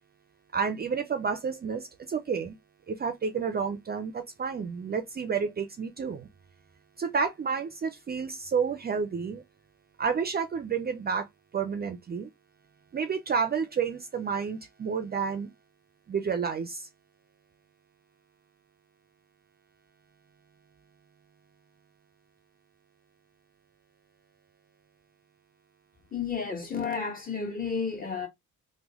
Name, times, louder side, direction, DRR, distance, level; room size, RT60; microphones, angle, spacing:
voice 1, 0.5-2.6 2.9-6.3 7.0-9.4 10.0-11.3 11.5-12.3 12.9-15.5 16.1-16.9, right 6 dB, 30° right, 0.5 m, -30 dB
voice 2, 26.1-28.3, left 5 dB, 30° left, 1.5 m, -32 dB
3.0 x 2.2 x 3.5 m
cardioid pair, 90°, 30 cm